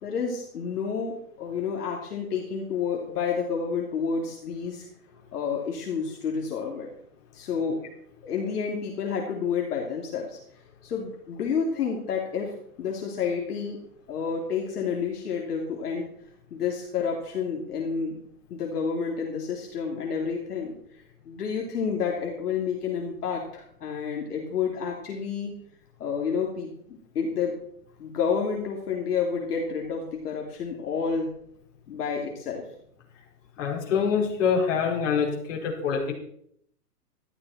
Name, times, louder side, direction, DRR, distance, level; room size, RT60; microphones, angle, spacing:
voice 1, 0.0-4.9 5.3-6.9 7.3-7.9 8.2-10.4 10.8-12.5 12.8-13.8 14.1-16.1 16.5-18.2 18.5-25.5 26.0-27.6 28.0-31.3 31.9-32.6, left 6 dB, 75° left, 0 dB, 3.1 m, -30 dB
voice 2, 33.6-36.1, left 6 dB, 55° left, 0 dB, 4.8 m, -25 dB
14.0 x 12.0 x 4.3 m, 0.68 s
hypercardioid pair, 155°, 46 cm